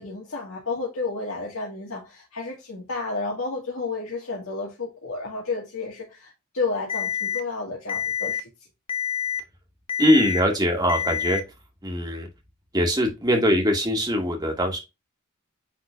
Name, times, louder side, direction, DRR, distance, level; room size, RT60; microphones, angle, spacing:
voice 1, 0.0-8.5, left 3 dB, 70° left, 2.2 m, -31 dB
Alarm, 6.9-7.4 7.9-8.4 8.9-9.4 9.9-10.4 10.9-11.4, left 9 dB, 25° left, 0.7 m, -27 dB
voice 2, 10.0-11.4 11.8-12.3 12.7-14.8, equal, 20° right, 2.2 m, -22 dB
9.3 x 4.3 x 2.7 m
head